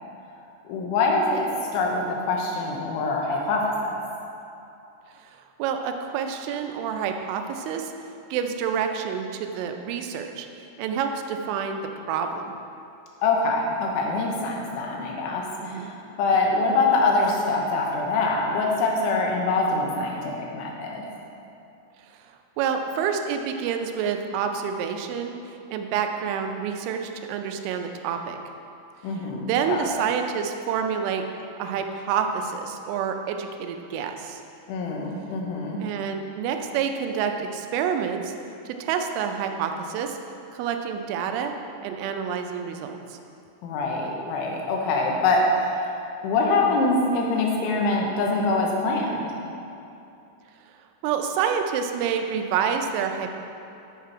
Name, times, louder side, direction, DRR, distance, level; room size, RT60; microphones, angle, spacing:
voice 1, 0.7-1.4 1.7-4.0 13.2-21.0 29.0-30.0 34.7-35.8 43.6-45.8 46.2-49.3, left 3 dB, 80° left, -1 dB, 3.4 m, -24 dB
voice 2, 5.6-7.9 8.3-10.5 10.8-11.8 12.1-12.5 15.6-15.9 22.6-25.3 25.7-28.4 29.4-31.3 31.6-34.4 35.8-38.3 38.7-40.2 40.5-41.5 41.8-43.2 51.0-53.3, right 7 dB, 85° right, 5 dB, 3.1 m, -28 dB
9.4 x 5.9 x 4.6 m, 2.8 s
omnidirectional pair, 5.5 m